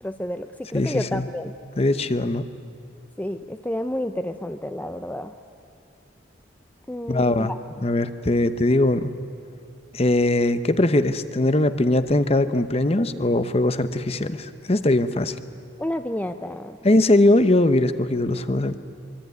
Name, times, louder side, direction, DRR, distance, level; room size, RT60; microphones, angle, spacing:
voice 1, 0.0-1.5 3.2-5.4 6.9-7.6 15.8-16.8, left 1 dB, 10° left, 8 dB, 0.6 m, -30 dB
voice 2, 0.7-1.2 1.8-2.4 7.1-7.5 7.8-9.1 9.9-15.3 16.8-18.8, left 1 dB, 30° left, 11 dB, 0.9 m, -20 dB
24.5 x 24.0 x 9.5 m, 2.6 s
head